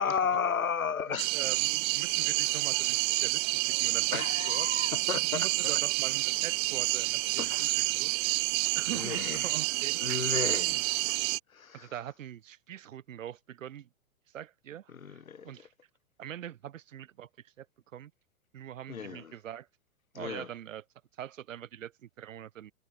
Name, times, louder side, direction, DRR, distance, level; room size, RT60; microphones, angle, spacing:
voice 1, 0.0-1.4 4.1-5.5 7.4-7.9 8.9-9.5 10.0-10.9 11.5-11.9 14.9-15.5 18.9-19.3 20.1-20.5, left 6 dB, 80° left, 2.7 m, -33 dB
voice 2, 1.1-4.7 5.1-8.4 8.7-10.5 11.7-13.9 14.3-15.7 16.2-17.7 17.9-18.1 18.5-19.7 20.1-20.9 21.1-22.7, right 10 dB, 70° right, 1.9 m, -43 dB
sound 1, 1.2-11.4, right 32 dB, 20° right, 0.3 m, -29 dB
figure-of-eight pair, 110°, 41 cm